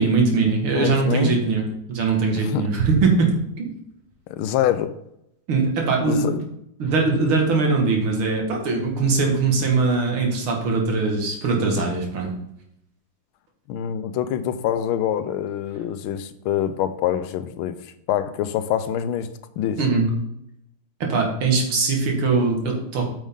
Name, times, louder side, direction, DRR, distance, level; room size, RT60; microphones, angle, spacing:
voice 1, 0.0-1.6 1.9-3.7 5.5-6.3 6.8-12.3 19.8-20.1 21.0-23.0, right 4 dB, 75° right, 0 dB, 2.6 m, -21 dB
voice 2, 0.7-1.4 2.4-2.7 4.3-4.9 6.0-6.4 13.7-19.3 19.6-19.8, left 10 dB, 85° left, 12 dB, 1.5 m, -25 dB
8.9 x 6.3 x 3.7 m, 0.79 s
omnidirectional pair, 2.3 m